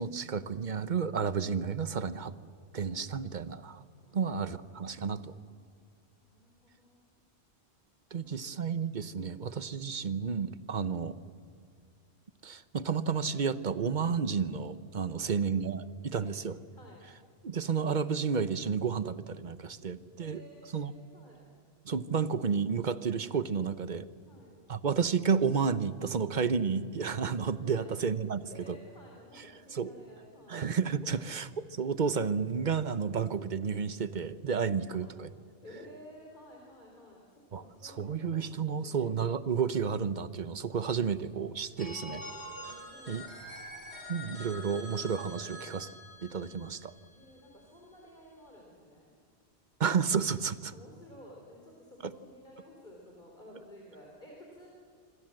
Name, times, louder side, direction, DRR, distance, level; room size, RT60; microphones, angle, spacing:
voice 1, 0.0-2.3 2.7-3.8 4.1-5.3 8.1-11.1 12.4-16.5 17.4-20.4 20.7-20.9 21.8-24.0 24.7-28.8 29.7-29.9 30.5-31.5 31.8-35.3 37.5-42.2 43.1-43.2 44.1-45.9 46.2-46.9 49.8-50.7, right 6 dB, 45° right, 14 dB, 1.0 m, -31 dB
voice 2, 4.0-7.0 8.1-8.7 9.1-9.8 10.7-10.9 15.0-15.4 16.0-16.4 16.7-17.1 20.2-21.5 24.2-24.5 27.6-27.9 28.5-30.6 31.0-31.3 34.9-35.0 35.6-39.1 40.8-41.4 42.6-43.6 47.1-49.1 50.7-54.7, equal, 45° left, -1 dB, 3.9 m, -54 dB
Telephone, 41.8-47.6, left 1 dB, 80° left, 4.0 m, -46 dB
26.5 x 25.0 x 7.8 m, 2.2 s
omnidirectional pair, 1.1 m